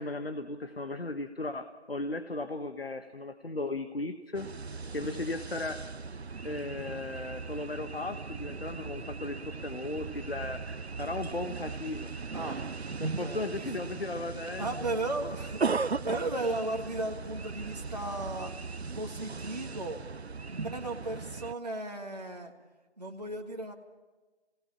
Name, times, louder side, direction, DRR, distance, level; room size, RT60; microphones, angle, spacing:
voice 1, 0.0-4.5 4.9-5.8 6.4-10.6 11.0-12.1 12.4-12.6 13.0-14.7 16.4-16.6, left 2 dB, 60° left, 9 dB, 1.2 m, -36 dB
sound 1, 4.3-21.5, right 4 dB, 70° right, 0.7 m, -38 dB
voice 2, 13.2-13.9 14.6-18.5 18.9-20.0 20.5-22.5 23.0-23.7, right 2 dB, 35° right, 0 dB, 1.8 m, -36 dB
27.0 x 18.0 x 7.1 m, 1.3 s
figure-of-eight pair, 175°, 34 cm